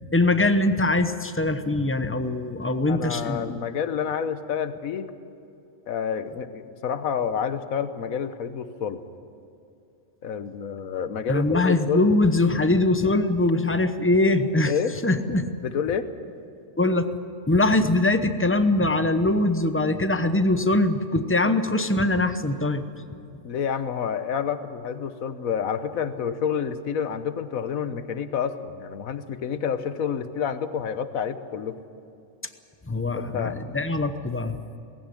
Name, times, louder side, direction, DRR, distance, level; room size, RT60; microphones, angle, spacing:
voice 1, 0.1-3.6 11.3-14.7 15.0-15.5 16.8-17.1 17.5-22.8 32.9-34.6, left 2 dB, 10° left, 9 dB, 0.7 m, -22 dB
voice 2, 2.9-5.1 5.9-9.0 10.2-12.1 14.7-15.0 15.6-16.1 23.4-31.8 33.1-33.6, left 7 dB, 90° left, 11 dB, 1.4 m, -29 dB
19.0 x 16.0 x 9.9 m, 2.6 s
omnidirectional pair, 1.4 m